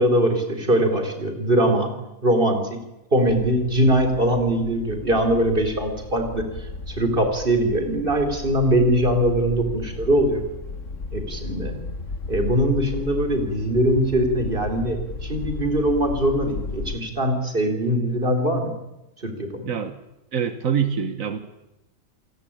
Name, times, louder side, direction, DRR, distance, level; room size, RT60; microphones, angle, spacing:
voice 1, 0.0-1.9 2.2-2.8 3.1-6.5 6.9-10.4 11.1-11.8 12.3-18.8 19.2-19.7, right 1 dB, 40° right, 6 dB, 4.2 m, -21 dB
sound 1, 3.3-17.0, left 3 dB, 65° left, 2.2 m, -35 dB
voice 2, 19.7-20.0 20.3-21.4, right 7 dB, 80° right, 9 dB, 1.7 m, -25 dB
28.5 x 18.5 x 8.8 m, 0.96 s
omnidirectional pair, 1.4 m